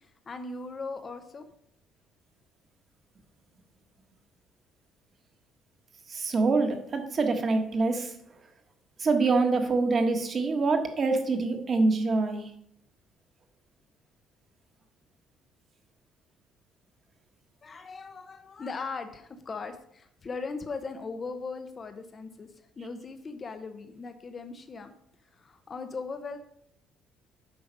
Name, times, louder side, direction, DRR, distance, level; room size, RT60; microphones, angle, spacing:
voice 1, 0.0-1.4 17.6-22.5 22.8-24.9 25.3-26.4, left 4 dB, 30° left, 7 dB, 0.8 m, -39 dB
voice 2, 6.1-8.1 9.0-12.4, right 3 dB, 35° right, 5 dB, 1.5 m, -25 dB
8.8 x 5.8 x 5.4 m, 0.72 s
cardioid pair, 120°, 0 cm